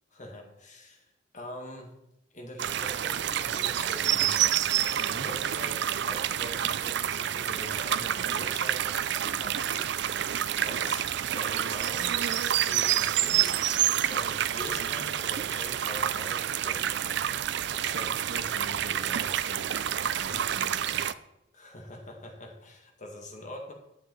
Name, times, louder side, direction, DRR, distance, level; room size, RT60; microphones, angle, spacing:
voice 1, 0.1-1.1 1.3-1.9 2.3-5.0 5.2-8.9 9.4-9.9 10.6-11.1 11.3-12.2 12.5-13.6 14.0-17.3 21.5-23.7, left 1 dB, 40° left, 2 dB, 1.9 m, -43 dB
sound 1, 2.6-21.1, right 10 dB, 65° right, 0.4 m, -28 dB
voice 2, 17.7-21.0, right 2 dB, 85° right, 3 dB, 1.7 m, -42 dB
10.5 x 8.5 x 3.9 m, 0.87 s
head